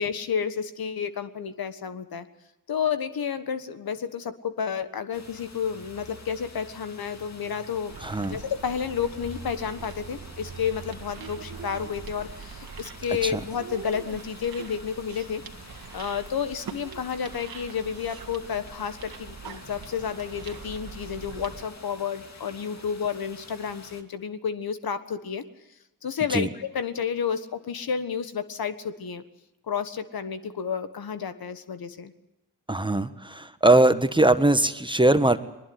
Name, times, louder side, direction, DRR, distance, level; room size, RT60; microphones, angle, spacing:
voice 1, 0.0-2.3 2.7-15.4 15.9-25.4 26.0-29.2 29.7-32.1, left 7 dB, 60° left, 11 dB, 1.5 m, -31 dB
sound 1, 5.1-24.0, left 3 dB, 40° left, 2.6 m, -48 dB
sound 2, 7.9-21.6, right 6 dB, 60° right, 1.9 m, -43 dB
voice 2, 8.0-8.4 13.2-13.4 26.3-26.5 32.7-35.4, right 2 dB, 10° right, 10 dB, 1.3 m, -21 dB
21.0 x 20.5 x 8.0 m, 0.91 s
supercardioid pair, 45°, 40 cm